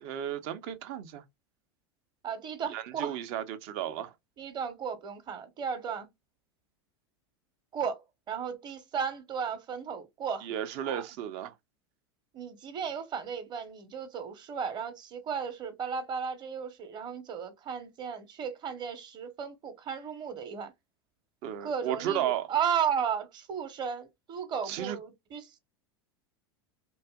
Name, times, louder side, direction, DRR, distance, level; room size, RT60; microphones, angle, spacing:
voice 1, 0.0-1.2 2.7-4.1 10.4-11.5 21.4-22.5 24.6-25.0, right 10 dB, 55° right, 0.6 m, -34 dB
voice 2, 2.2-3.2 4.4-6.1 7.7-10.5 10.8-11.0 12.3-20.7 21.6-25.6, right 7 dB, 35° right, 0.9 m, -34 dB
2.7 x 2.4 x 2.3 m
hypercardioid pair, 95°, 13 cm